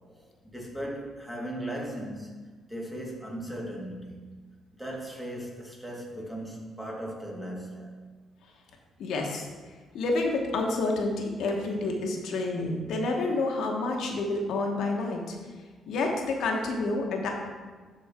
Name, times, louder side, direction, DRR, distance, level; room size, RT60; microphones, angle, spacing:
voice 1, 0.5-2.3 2.7-4.4 4.8-8.0, right 1 dB, 5° right, -2 dB, 1.8 m, -37 dB
voice 2, 9.0-9.5 9.9-15.4 15.9-17.3, left 2 dB, 75° left, 1 dB, 1.1 m, -29 dB
11.0 x 4.2 x 3.6 m, 1.4 s
cardioid pair, 90°, 0 cm